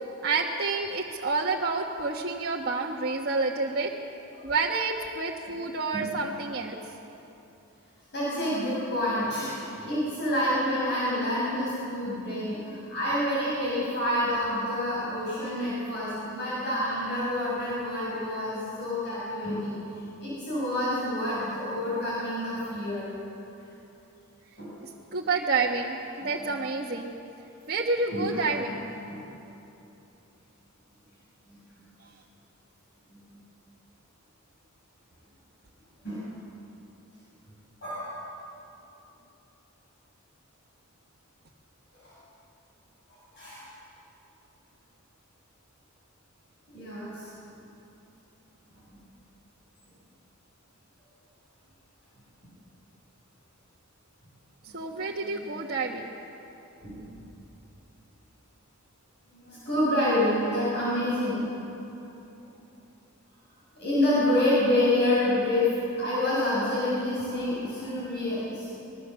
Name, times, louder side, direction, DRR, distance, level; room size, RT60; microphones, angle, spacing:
voice 1, 0.2-3.9 4.4-6.8 25.1-27.1 27.7-28.9 54.7-56.1, right 3 dB, 45° right, -3 dB, 1.4 m, -29 dB
voice 2, 8.1-23.1 24.6-24.7 28.1-28.8 29.0-29.2 33.3-33.4 36.0-36.3 37.8-38.1 41.9-42.1 43.4-43.6 46.7-47.3 54.7-54.8 55.2-55.6 56.8-57.2 59.3-61.4 62.1-62.2 63.7-68.7, left 1 dB, 55° left, -8 dB, 7.4 m, -28 dB
24.5 x 21.5 x 7.0 m, 3.0 s
head